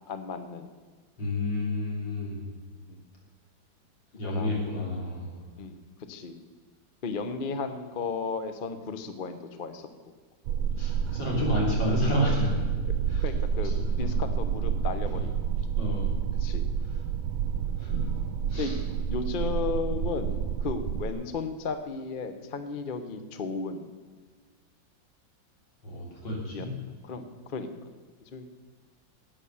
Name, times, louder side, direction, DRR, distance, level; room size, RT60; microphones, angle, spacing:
voice 1, 0.1-0.7 2.9-3.0 4.2-4.6 5.6-5.8 6.1-6.4 7.0-9.9 13.2-13.7 14.0-15.4 16.4-16.6 18.6-18.7 19.1-20.3 20.6-23.9 26.5-26.7 27.0-27.7 28.3-28.5, left 4 dB, 45° left, 9 dB, 0.6 m, -34 dB
voice 2, 1.2-2.4 4.1-5.3 10.8-12.5 13.1-13.2 13.6-14.2 15.1-15.2 15.7-16.1 17.8-18.1 18.5-18.8 25.8-26.7, left 1 dB, 70° left, -3 dB, 4.2 m, -30 dB
sound 1, 10.5-21.1, right 7 dB, 90° right, 1.4 m, -29 dB
11.5 x 8.7 x 7.0 m, 1.5 s
omnidirectional pair, 2.1 m